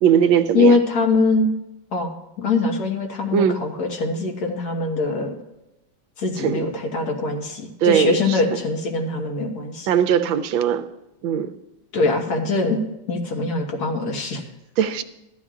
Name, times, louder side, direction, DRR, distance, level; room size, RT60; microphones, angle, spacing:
voice 1, 0.0-0.8 3.3-3.6 6.4-6.6 7.8-8.4 9.9-10.9 11.2-11.5 14.8-15.0, right 8 dB, 85° right, 11 dB, 1.4 m, -19 dB
voice 2, 0.5-1.5 1.9-5.3 6.2-9.9 11.9-12.8 13.1-14.5, left 3 dB, 55° left, 2 dB, 1.9 m, -22 dB
15.0 x 11.5 x 2.5 m, 0.95 s
omnidirectional pair, 2.1 m